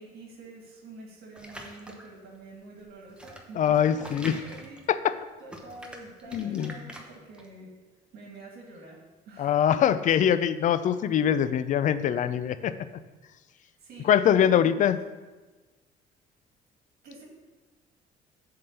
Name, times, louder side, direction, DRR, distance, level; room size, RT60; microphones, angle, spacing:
voice 1, 0.0-4.8 5.4-7.7 8.1-9.0 9.3-9.8 10.9-11.1 13.5-14.9 17.0-17.2, right 3 dB, 65° right, -1 dB, 1.8 m, -47 dB
sound 1, 1.3-2.2 2.8-5.2 5.5-7.5, right 1 dB, 5° right, 0.9 m, -44 dB
voice 2, 3.6-4.3 4.9-5.1 6.3-6.7 9.4-12.7 14.0-15.0, left 9 dB, 50° left, 13 dB, 0.4 m, -23 dB
7.6 x 3.9 x 6.5 m, 1.2 s
cardioid pair, 110°, 17 cm